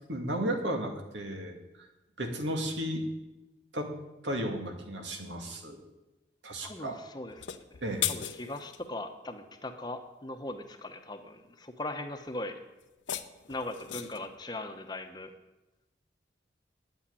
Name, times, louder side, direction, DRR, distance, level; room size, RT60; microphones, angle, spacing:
voice 1, 0.1-1.9 2.2-3.0 3.7-3.9 4.2-5.8 6.4-7.0 7.8-8.1, right 1 dB, 80° right, 3 dB, 2.2 m, -34 dB
voice 2, 6.6-7.6 8.1-12.6 13.5-15.3, left 2 dB, 25° left, 6 dB, 1.0 m, -39 dB
sound 1, 7.3-8.8 12.8-14.3, left 11 dB, 90° left, 0.8 m, -37 dB
9.5 x 8.8 x 9.6 m, 1.0 s
head